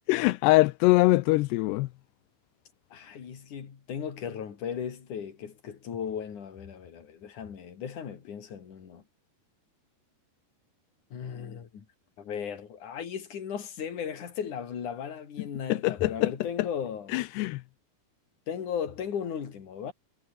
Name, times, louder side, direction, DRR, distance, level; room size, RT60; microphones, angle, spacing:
voice 1, 0.1-1.9 15.7-16.3 17.1-17.6, left 20 dB, 85° left, 2.8 m, -23 dB
voice 2, 2.9-9.0 11.1-11.8 12.2-17.1 18.5-19.9, left 7 dB, 50° left, 4.3 m, -36 dB
omnidirectional pair, 4.8 m